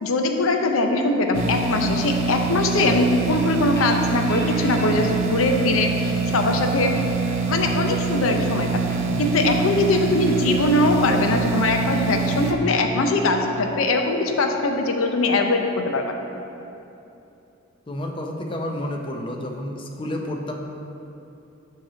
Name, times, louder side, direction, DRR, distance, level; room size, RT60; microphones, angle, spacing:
voice 1, 0.0-7.0 7.5-8.7 9.2-16.0, left 2 dB, 90° left, 4 dB, 0.6 m, -21 dB
sound 1, 1.3-12.5, right 5 dB, 85° right, 0.5 m, -25 dB
sound 2, 1.7-13.2, left 2 dB, 50° left, 0.8 m, -35 dB
voice 2, 17.9-20.5, left 1 dB, 25° left, 2 dB, 0.5 m, -30 dB
7.6 x 2.9 x 5.7 m, 2.8 s
head